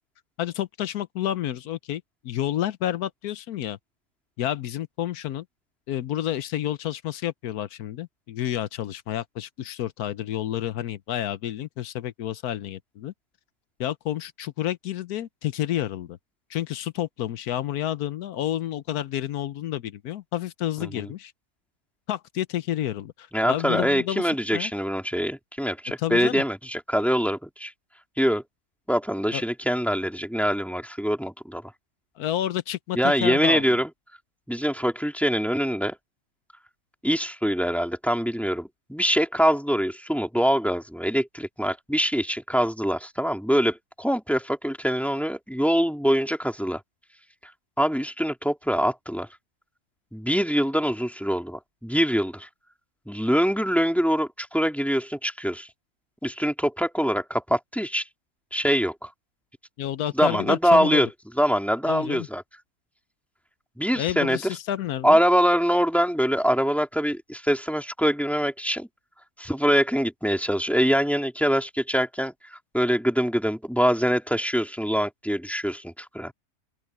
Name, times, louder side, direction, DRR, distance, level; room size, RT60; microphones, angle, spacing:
voice 1, 0.4-3.8 4.4-5.4 5.9-13.1 13.8-16.2 16.5-21.3 22.1-24.7 26.0-26.4 29.3-29.4 32.2-33.8 59.8-61.1 61.9-62.3 64.0-65.2, left 12 dB, 75° left, 1.2 m, -30 dB
voice 2, 20.8-21.1 23.3-27.7 28.2-28.4 28.9-31.7 32.9-33.9 34.5-36.0 37.0-46.8 47.8-49.3 50.1-52.5 53.1-55.7 56.2-58.0 58.5-59.1 60.1-61.1 61.4-62.4 63.8-64.4 65.0-68.9 69.4-76.3, equal, ahead, 2.4 m, -24 dB
open air
omnidirectional pair, 1.6 m